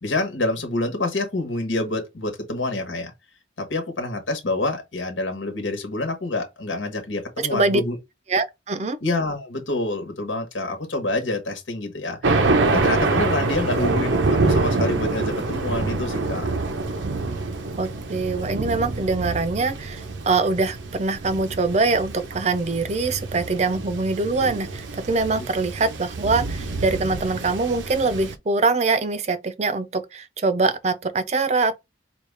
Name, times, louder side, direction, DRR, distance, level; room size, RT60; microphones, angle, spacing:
voice 1, 0.0-3.1 3.6-8.0 9.0-12.3 12.7-16.5 25.4-25.5, left 2 dB, 85° left, 1.2 m, -27 dB
voice 2, 7.4-7.8 8.3-9.0 17.8-31.8, right 3 dB, 35° right, 0.5 m, -23 dB
Thunder, 12.2-28.4, right 3 dB, 80° right, 0.7 m, -26 dB
4.8 x 2.4 x 3.3 m
head